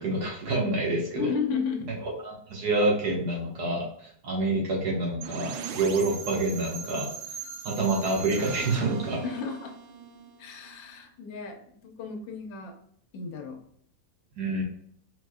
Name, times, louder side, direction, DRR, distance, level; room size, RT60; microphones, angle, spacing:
voice 1, 0.0-1.3 2.2-3.9 4.2-7.1 7.6-9.2 14.4-14.6, right 2 dB, 60° right, -2 dB, 1.8 m, -27 dB
voice 2, 1.1-1.9 9.2-9.7 10.4-12.8 13.1-13.6, left 6 dB, 80° left, 4 dB, 1.4 m, -33 dB
sound 1, 5.2-11.0, right 6 dB, 90° right, 1.3 m, -39 dB
4.4 x 4.3 x 2.3 m, 0.64 s
omnidirectional pair, 2.0 m